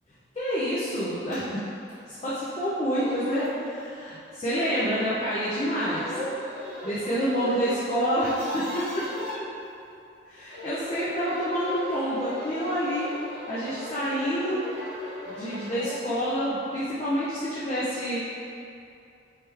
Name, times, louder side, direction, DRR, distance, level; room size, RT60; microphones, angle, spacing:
voice 1, 0.3-1.6 2.1-6.1 6.8-9.2 10.3-13.1 13.5-14.6 15.3-18.2, equal, 30° left, -9 dB, 0.5 m, -28 dB
sound 1, 1.3-1.4 1.9-2.0 2.6-2.7 2.9-3.6 4.5-5.2 5.7-7.8 8.1-9.4 10.4-16.1, equal, 65° left, 1.2 m, -37 dB
3.2 x 3.1 x 3.3 m, 2.5 s
head